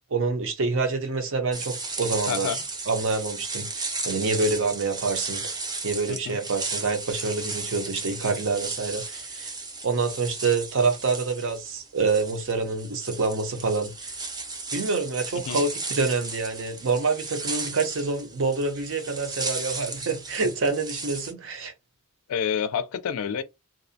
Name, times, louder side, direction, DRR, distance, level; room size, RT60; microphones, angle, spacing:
voice 1, 0.1-2.6 2.9-5.5 5.8-9.5 9.8-14.1 14.7-21.7, right 4 dB, 65° right, 0.6 m, -27 dB
sound 1, 1.5-21.3, right 3 dB, 20° right, 0.5 m, -35 dB
voice 2, 2.3-2.6 6.1-6.4 15.4-15.6 22.3-23.4, left 7 dB, 70° left, 0.4 m, -28 dB
2.6 x 2.1 x 2.6 m
head